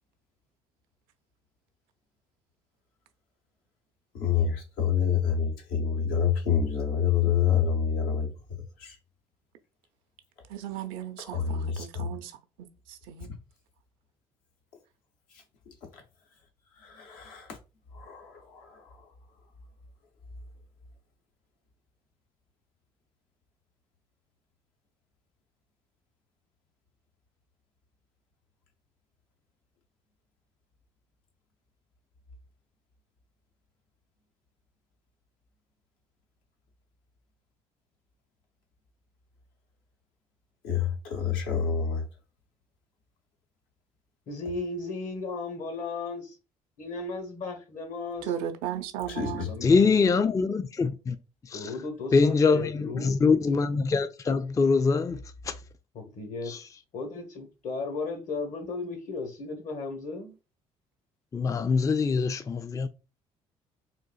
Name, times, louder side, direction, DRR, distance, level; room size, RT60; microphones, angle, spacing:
voice 1, 4.1-8.3 8.8-9.0 11.2-12.1 13.2-13.3 15.7-16.0 16.8-17.6 17.9-19.1 40.6-42.1 49.1-49.7, left 7 dB, 80° left, 0.8 m, -28 dB
voice 2, 10.5-12.3 12.9-13.3 48.3-49.5, right 10 dB, 80° right, 0.5 m, -35 dB
voice 3, 44.3-46.4 46.8-48.3 49.4-49.9 51.5-53.2 55.9-56.6 56.9-60.3, left 3 dB, 60° left, 1.1 m, -35 dB
voice 4, 49.6-51.2 51.5-51.6 52.1-55.2 55.5-55.6 56.5-56.6 61.3-62.9, left 4 dB, 20° left, 0.4 m, -23 dB
3.8 x 2.5 x 2.3 m
hypercardioid pair, 55°, 15 cm